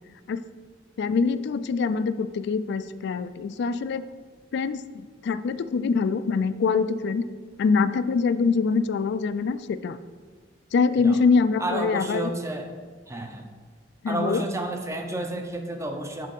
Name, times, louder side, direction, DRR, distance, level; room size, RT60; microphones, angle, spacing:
voice 1, 1.0-4.1 4.5-7.2 7.6-10.0 10.7-12.3 14.0-14.4, left 5 dB, 60° left, 14 dB, 0.3 m, -24 dB
voice 2, 11.6-12.7 13.1-13.5 14.1-16.3, right 1 dB, 15° right, 5 dB, 0.6 m, -31 dB
6.6 x 4.0 x 5.3 m, 1.5 s
head